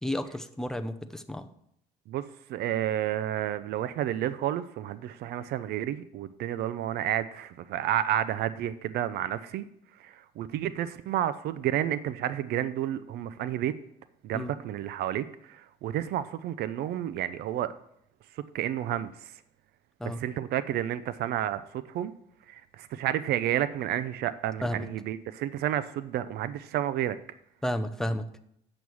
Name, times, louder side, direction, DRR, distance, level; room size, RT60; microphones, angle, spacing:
voice 1, 0.0-1.5 14.3-14.5 20.0-20.2 24.6-24.9 27.6-28.3, equal, 5° left, 7 dB, 0.7 m, -32 dB
voice 2, 2.5-9.7 10.0-13.7 14.2-17.7 18.5-19.3 20.0-22.1 22.5-27.2, right 11 dB, 70° right, 14 dB, 0.5 m, -31 dB
7.9 x 6.2 x 7.0 m, 0.74 s
cardioid pair, 110°, 17 cm